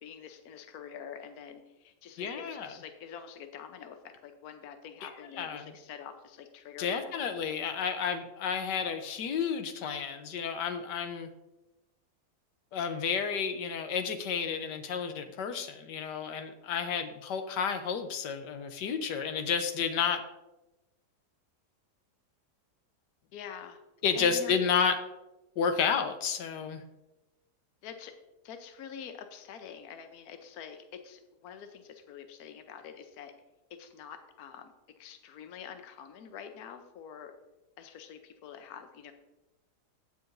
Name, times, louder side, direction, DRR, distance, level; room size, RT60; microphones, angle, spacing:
voice 1, 0.0-7.2 23.3-23.8 24.1-24.6 27.8-28.1 28.4-33.3 33.8-37.3 37.8-39.1, left 8 dB, 65° left, 7 dB, 1.2 m, -46 dB
voice 2, 2.2-2.7 5.0-5.1 5.4-5.7 6.8-11.3 12.7-20.2 24.0-25.0 25.6-26.8, left 6 dB, 85° left, 9 dB, 1.4 m, -31 dB
16.5 x 6.8 x 2.6 m, 1.0 s
omnidirectional pair, 1.8 m